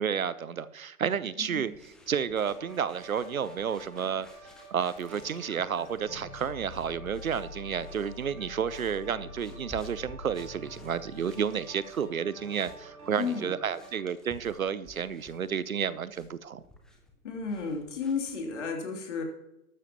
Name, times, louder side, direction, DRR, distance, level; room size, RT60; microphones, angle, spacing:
voice 1, 0.0-1.7 2.1-4.3 4.7-16.6, right 7 dB, 65° right, 17 dB, 0.8 m, -31 dB
voice 2, 1.4-1.7 13.2-13.5 17.2-19.2, left 5 dB, 50° left, 2 dB, 3.1 m, -33 dB
sound 1, 1.6-18.6, left 1 dB, ahead, 0.7 m, -54 dB
sound 2, 2.5-13.9, right 3 dB, 15° right, 3.5 m, -50 dB
sound 3, 4.9-12.2, left 5 dB, 70° left, 3.0 m, -47 dB
13.0 x 13.0 x 3.0 m, 0.89 s
figure-of-eight pair, 125°, 46 cm